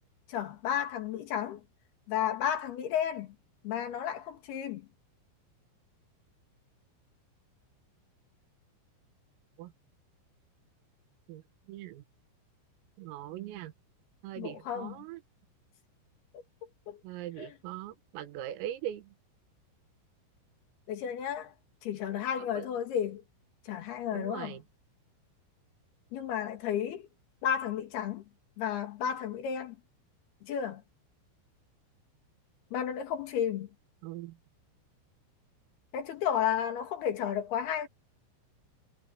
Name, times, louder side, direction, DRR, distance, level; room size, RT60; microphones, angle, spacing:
voice 1, 0.3-1.6 2.1-3.4 3.6-4.9 14.4-15.0 16.9-17.0 17.4-17.5 20.9-21.5 21.8-23.2 23.7-24.6 26.1-27.1 27.4-28.3 28.6-29.8 30.4-30.8 32.7-33.7 35.9-37.9, left 9 dB, 60° left, 3.7 m, -32 dB
voice 2, 11.7-12.0 13.0-13.7 14.2-15.2 17.0-19.1 22.4-22.7 24.1-24.6 34.0-34.4, right 13 dB, 85° right, 4.2 m, -41 dB
omnidirectional pair, 5.9 m